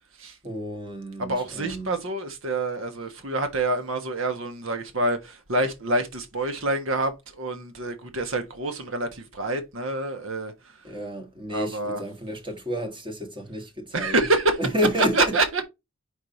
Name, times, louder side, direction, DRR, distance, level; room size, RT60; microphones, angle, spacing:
voice 1, 0.4-1.9 10.8-14.2 14.6-15.2, equal, 25° right, 1.5 m, -30 dB
voice 2, 1.2-10.9 11.5-12.0 13.9-14.6 15.0-15.6, right 2 dB, 70° right, 1.4 m, -27 dB
5.4 x 4.8 x 4.0 m
head